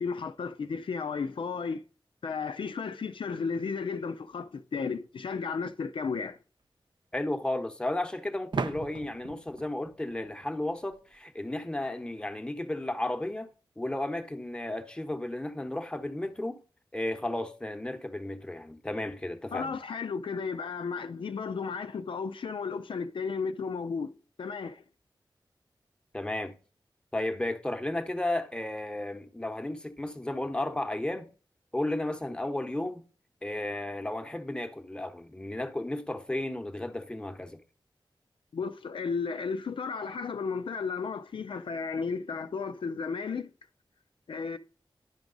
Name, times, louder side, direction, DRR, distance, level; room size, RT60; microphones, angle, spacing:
voice 1, 0.0-1.8 2.2-6.4 19.5-24.8 38.5-43.5 44.3-44.6, left 5 dB, 80° left, 0.4 m, -34 dB
sound 1, 5.5-5.6 8.5-11.2, right 4 dB, 65° right, 0.5 m, -38 dB
voice 2, 7.1-16.6 16.9-19.8 26.1-26.5 27.1-31.3 31.7-33.0 33.4-37.6, left 1 dB, 10° left, 0.9 m, -33 dB
10.5 x 4.7 x 3.9 m
wide cardioid pair, 70°, 9 cm